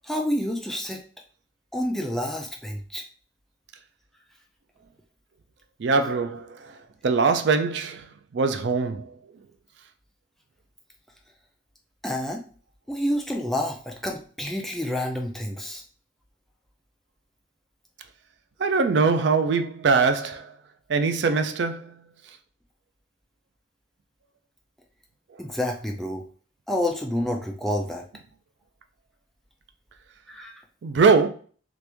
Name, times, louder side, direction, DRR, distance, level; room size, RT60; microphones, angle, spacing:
voice 1, 0.1-1.0 1.7-3.0 12.0-12.4 12.9-15.8 25.4-26.2 26.7-28.0 30.3-30.5, left 1 dB, ahead, 0.4 m, -28 dB
voice 2, 5.8-6.7 7.0-8.1 8.3-9.1 18.6-20.5 20.9-21.9 30.8-31.3, right 4 dB, 70° right, 0.4 m, -22 dB
3.0 x 2.5 x 3.3 m
head